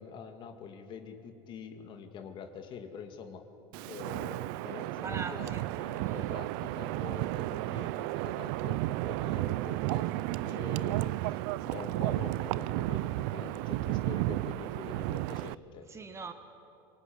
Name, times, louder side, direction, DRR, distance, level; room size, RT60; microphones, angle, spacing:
voice 1, 0.0-3.5 3.9-10.1 10.4-15.9, left 6 dB, 45° left, 6 dB, 2.5 m, -45 dB
Wind, 3.7-15.5, right 18 dB, 70° right, 0.6 m, -33 dB
voice 2, 5.0-5.6 6.0-6.3 15.9-16.3, right 4 dB, 25° right, 8 dB, 1.9 m, -41 dB
24.0 x 23.0 x 9.6 m, 2.8 s
supercardioid pair, 115°, 11 cm